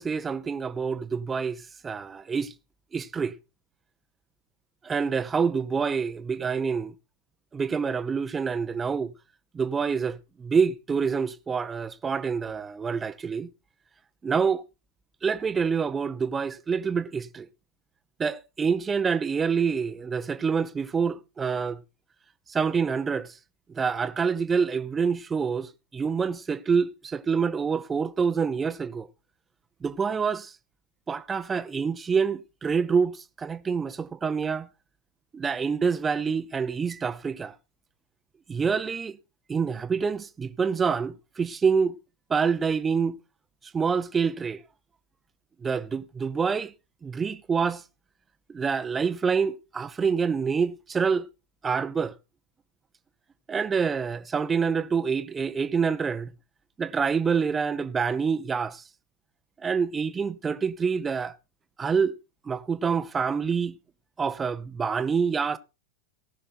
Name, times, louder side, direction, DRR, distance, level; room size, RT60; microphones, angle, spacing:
voice 1, 0.0-2.5 2.9-3.3 4.8-6.9 7.5-9.1 9.5-13.5 14.2-14.6 15.2-17.5 18.2-21.8 22.5-23.4 23.7-29.1 29.8-30.5 31.1-34.7 35.3-37.6 38.5-39.2 39.5-41.9 42.3-43.2 43.7-44.6 45.6-46.7 47.0-47.8 48.5-51.3 51.6-52.1 53.5-56.3 56.8-58.8 59.6-61.3 61.8-62.1 62.5-63.8 64.2-65.6, right 6 dB, 15° right, 0.8 m, -26 dB
18.5 x 6.4 x 4.3 m
figure-of-eight pair, 90°, 0 cm